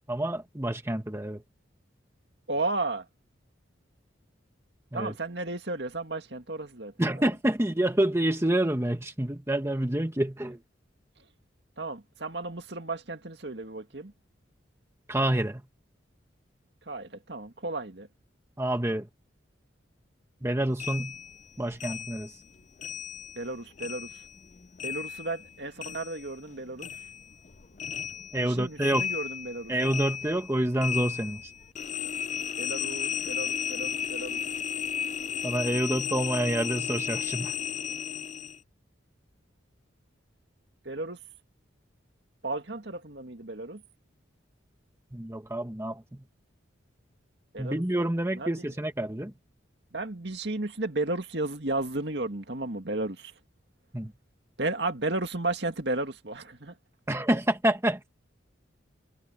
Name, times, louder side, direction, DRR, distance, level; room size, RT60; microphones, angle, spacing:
voice 1, 0.1-1.4 4.9-5.1 7.0-10.6 15.1-15.6 18.6-19.1 20.4-21.1 21.6-22.4 28.3-29.1 29.7-31.5 35.4-37.5 45.1-46.0 47.6-49.3 53.9-54.1 57.1-58.0, right 1 dB, 15° right, 1.2 m, -28 dB
voice 2, 2.5-3.1 4.9-7.3 11.8-14.1 16.9-18.1 23.4-24.2 24.8-26.9 28.4-29.7 32.6-34.4 40.8-41.2 42.4-43.8 47.5-47.8 48.3-48.6 49.9-53.3 54.6-56.7, right 2 dB, 60° right, 2.2 m, -33 dB
sound 1, 20.8-23.5 23.8-26.5 26.8-38.6, left 8 dB, 40° left, 0.5 m, -34 dB
head